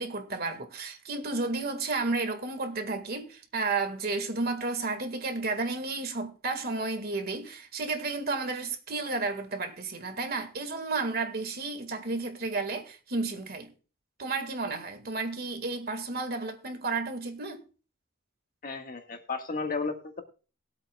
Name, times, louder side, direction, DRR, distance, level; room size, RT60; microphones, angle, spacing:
voice 1, 0.0-13.7 14.2-17.6, right 3 dB, 50° right, 1.8 m, -32 dB
voice 2, 18.6-20.2, left 4 dB, 45° left, 1.6 m, -33 dB
21.0 x 8.2 x 2.3 m
head